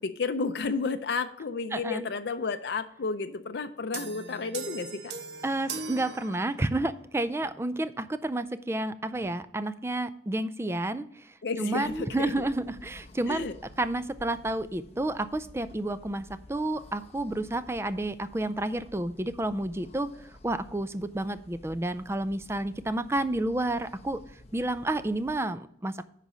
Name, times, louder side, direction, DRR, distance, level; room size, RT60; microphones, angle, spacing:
voice 1, 0.0-5.1 11.4-12.3 13.3-13.5, left 4 dB, 70° left, 8 dB, 0.5 m, -32 dB
voice 2, 1.7-2.1 5.4-13.5 13.8-24.2 24.5-26.1, right 1 dB, 15° right, 13 dB, 0.4 m, -30 dB
sound 1, 3.9-6.9, right 5 dB, 75° right, 0.9 m, -40 dB
sound 2, 11.8-25.4, left 1 dB, 35° left, 1.0 m, -52 dB
10.5 x 4.1 x 6.2 m, 0.70 s
head